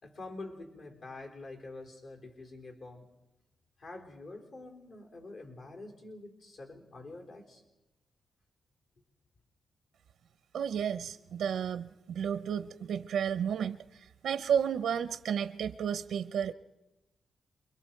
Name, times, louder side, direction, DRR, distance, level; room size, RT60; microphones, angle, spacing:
voice 1, 0.0-3.1 3.8-7.6, left 2 dB, 65° left, 2 dB, 4.0 m, -46 dB
voice 2, 10.5-13.8 14.2-16.5, right 8 dB, 85° right, 12 dB, 0.6 m, -32 dB
28.5 x 22.0 x 4.6 m, 1.0 s
cardioid pair, 100°, 0 cm